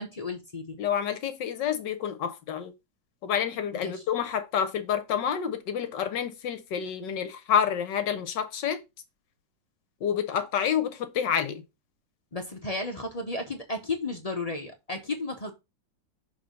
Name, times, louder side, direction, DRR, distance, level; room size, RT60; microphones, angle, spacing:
voice 1, 0.0-0.8 3.8-4.0 12.3-15.5, left 2 dB, 50° left, 0.4 m, -33 dB
voice 2, 0.8-2.7 3.2-8.8 10.0-11.6, left 8 dB, 70° left, 1.5 m, -28 dB
6.6 x 3.4 x 5.2 m
omnidirectional pair, 2.0 m